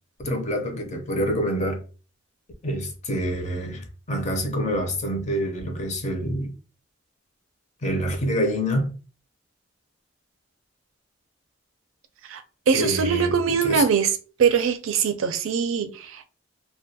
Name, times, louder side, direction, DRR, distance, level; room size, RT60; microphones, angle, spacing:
voice 1, 0.2-1.8 2.6-6.5 7.8-8.9 12.7-13.4 13.6-13.8, equal, 35° left, 0.5 m, -26 dB
voice 2, 12.3-14.1 14.4-16.2, right 6 dB, 90° right, 0.4 m, -22 dB
2.2 x 2.2 x 2.7 m
head